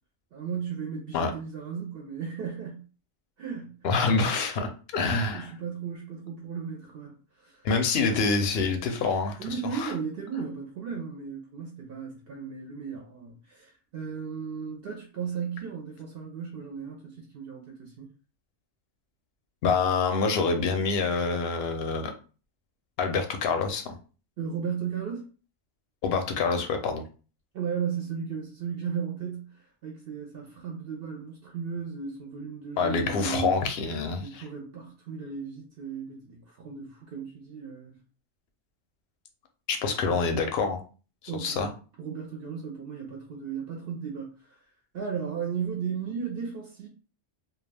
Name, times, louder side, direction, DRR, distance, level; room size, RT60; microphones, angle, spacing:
voice 1, 0.3-2.9 3.4-3.8 4.9-7.7 9.4-18.1 24.4-25.3 26.5-26.6 27.5-33.5 34.2-37.9 41.3-41.7 42.0-44.6 44.9-46.9, right 6 dB, 65° right, 0.6 m, -35 dB
voice 2, 3.8-5.4 7.6-9.4 9.7-9.9 19.6-22.1 23.0-24.0 26.0-27.0 32.8-34.4 39.7-40.8 41.4-41.7, left 4 dB, 65° left, 0.7 m, -26 dB
2.2 x 2.2 x 3.2 m
omnidirectional pair, 1.3 m